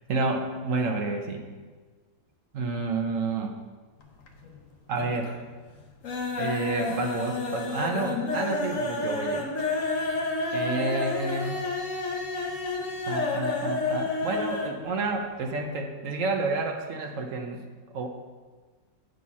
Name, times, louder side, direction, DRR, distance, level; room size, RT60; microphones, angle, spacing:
voice 1, 0.1-1.4 2.5-3.5 4.9-5.4 6.4-9.5 10.5-11.6 13.1-17.6 17.9-18.1, right 3 dB, 60° right, 3 dB, 0.8 m, -30 dB
sound 1, 4.0-4.6 4.9-5.4 5.7-14.8 15.1-15.2 15.5-15.6, left 3 dB, 50° left, 1.1 m, -30 dB
9.4 x 4.2 x 5.8 m, 1.4 s
omnidirectional pair, 2.0 m